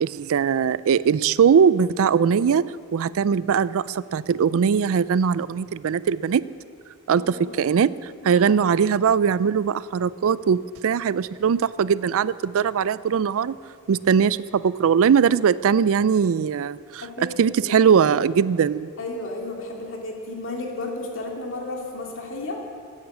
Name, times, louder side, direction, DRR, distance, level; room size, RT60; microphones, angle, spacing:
voice 1, 0.0-2.7 2.9-6.4 7.1-13.6 13.9-17.1 17.4-18.9, right 7 dB, 65° right, 18 dB, 0.4 m, -20 dB
voice 2, 7.1-7.7 8.2-8.6 17.0-17.9 19.0-22.7, left 2 dB, 65° left, 0 dB, 2.7 m, -33 dB
13.5 x 9.5 x 8.4 m, 2.2 s
head